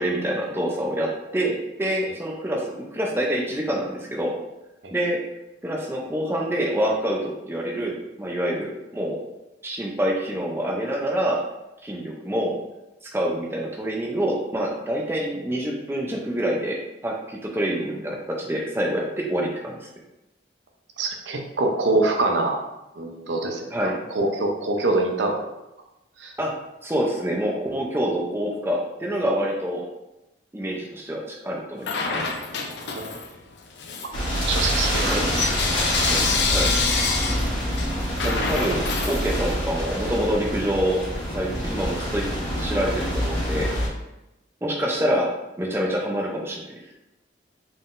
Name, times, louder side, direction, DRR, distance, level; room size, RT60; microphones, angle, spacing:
voice 1, 0.0-2.6 2.9-4.3 4.9-5.2 5.6-9.2 9.6-11.4 11.8-12.5 13.1-16.8 17.0-19.8 23.7-24.0 26.4-26.5 26.8-29.8 30.5-32.2 35.1-35.3 36.4-36.7 38.2-41.0 41.3-43.7 44.6-45.3 45.6-46.7, equal, 15° right, -1 dB, 0.5 m, -26 dB
voice 2, 21.0-22.6 23.0-23.7 24.1-25.4 26.2-26.3 32.9-33.1 34.5-35.6 36.1-36.2, right 2 dB, 75° right, 3 dB, 0.6 m, -24 dB
Bell / Coin (dropping), 31.8-33.4 33.8-39.7, left 4 dB, 70° left, 0.5 m, -27 dB
sound 1, 34.1-43.9, equal, 85° left, 1.3 m, -26 dB
3.9 x 3.8 x 2.5 m, 0.94 s
head